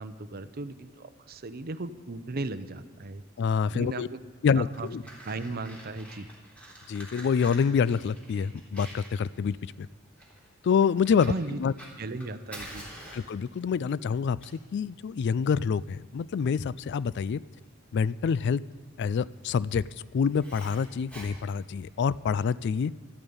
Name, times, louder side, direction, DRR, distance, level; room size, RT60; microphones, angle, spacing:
voice 1, 0.0-3.2 3.7-4.2 4.5-4.9 5.2-6.3 11.3-11.6 12.0-12.9, right 2 dB, 45° right, 13 dB, 0.7 m, -36 dB
voice 2, 3.4-4.1 4.4-5.0 6.9-9.9 10.6-11.3 11.6-11.7 13.1-14.4 14.7-17.4 17.9-18.6 19.0-19.8 20.1-22.9, left 6 dB, 55° left, 20 dB, 0.3 m, -26 dB
Fire, 4.7-22.3, right 1 dB, 5° left, 3.5 m, -48 dB
12.5 x 8.8 x 9.5 m, 1.5 s
head